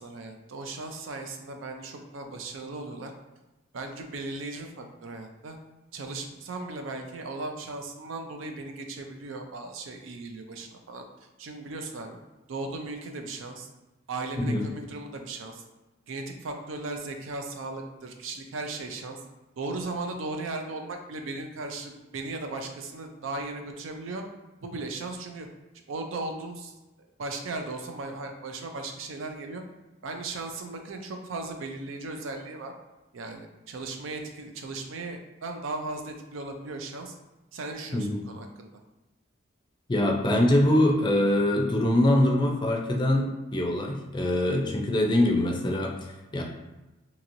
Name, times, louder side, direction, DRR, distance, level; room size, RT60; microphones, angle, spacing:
voice 1, 0.0-3.1 3.7-5.6 5.9-11.1 11.4-12.2 12.5-13.7 14.1-15.6 16.1-19.2 19.6-24.2 24.6-25.5 25.9-26.7 27.0-29.6 30.0-32.7 33.1-37.1 37.5-38.7, right 3 dB, 80° right, 4 dB, 0.4 m, -37 dB
voice 2, 39.9-46.4, left 1 dB, 25° left, 1 dB, 0.4 m, -24 dB
2.9 x 2.8 x 2.6 m, 1.1 s
head